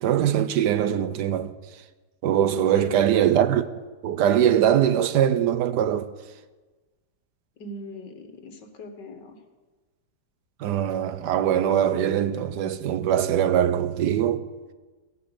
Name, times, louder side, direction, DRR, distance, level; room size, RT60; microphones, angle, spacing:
voice 1, 0.0-1.5 2.2-3.6 4.0-6.1 10.6-14.4, right 10 dB, 75° right, 1.4 m, -22 dB
voice 2, 7.6-9.4, left 2 dB, 80° left, 2.3 m, -40 dB
15.5 x 9.4 x 8.2 m
omnidirectional pair, 1.9 m